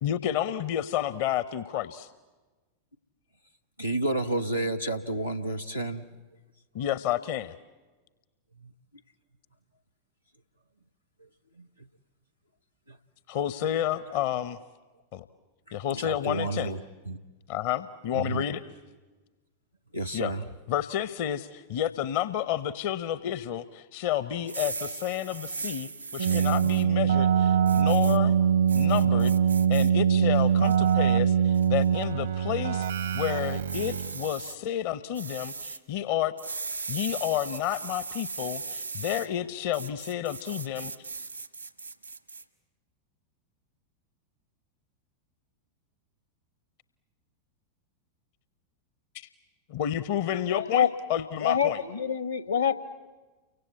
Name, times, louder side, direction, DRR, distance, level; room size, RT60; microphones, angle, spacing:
voice 1, 0.0-2.1 6.7-7.5 13.3-14.6 15.1-15.3 15.7-16.7 17.5-18.6 20.1-20.3 20.7-28.3 28.7-29.3 29.7-32.9 33.1-36.3 36.9-40.9 49.1-49.3 49.7-51.8, left 11 dB, 50° left, 0.8 m, -30 dB
voice 2, 3.8-6.0 8.6-8.7 11.6-11.7 12.9-13.0 15.7-17.2 18.1-18.4 19.9-20.4, right 1 dB, 90° left, 0.9 m, -31 dB
sound 1, 24.4-26.8 27.7-28.2 28.7-29.9 30.4-30.9 31.5-31.9 33.7-34.6 35.1-35.8 36.4-39.3 39.7-42.4, right 4 dB, 85° right, 1.3 m, -38 dB
Keyboard (musical), 26.2-34.3, right 8 dB, 65° right, 0.8 m, -23 dB
voice 3, 50.5-50.9 51.4-52.7, left 8 dB, 70° left, 1.4 m, -25 dB
29.5 x 24.5 x 8.3 m
figure-of-eight pair, 90°, 0 cm